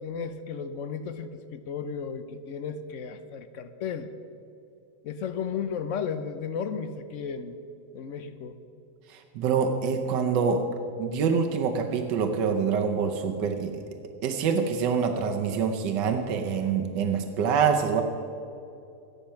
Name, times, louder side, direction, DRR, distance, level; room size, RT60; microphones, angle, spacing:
voice 1, 0.0-4.1 5.0-7.6 7.9-8.6, left 6 dB, 60° left, 11 dB, 0.8 m, -34 dB
voice 2, 9.1-10.6 11.0-13.7 14.2-18.0, right 6 dB, 80° right, 3 dB, 1.5 m, -25 dB
13.5 x 10.5 x 5.7 m, 2.6 s
omnidirectional pair, 1.9 m